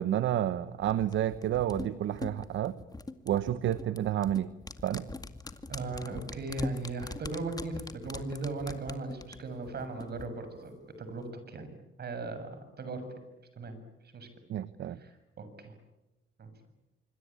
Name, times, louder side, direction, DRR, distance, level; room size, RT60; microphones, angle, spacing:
voice 1, 0.0-2.8 3.3-4.5 4.8-5.1 14.5-15.0, right 11 dB, 75° right, 14 dB, 1.1 m, -30 dB
sound 1, 0.8-10.3 10.6-10.7, left 3 dB, 20° left, 2.2 m, -43 dB
voice 2, 5.7-11.7 12.0-13.0 13.6-13.8 14.1-14.3 15.0-15.1 15.4-15.7 16.4-16.5, right 3 dB, 55° right, 9 dB, 7.3 m, -38 dB
26.0 x 25.0 x 8.9 m, 1.0 s
cardioid pair, 90°, 20 cm